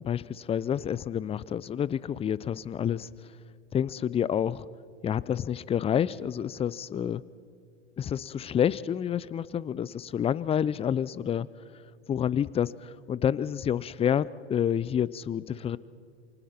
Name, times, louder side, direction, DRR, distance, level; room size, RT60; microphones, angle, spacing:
voice 1, 0.0-3.1 3.7-4.7 5.0-7.2 8.0-11.5 12.1-15.8, left 9 dB, 20° left, 19 dB, 0.5 m, -28 dB
28.0 x 25.0 x 4.4 m, 2.3 s
hypercardioid pair, 90°, 33 cm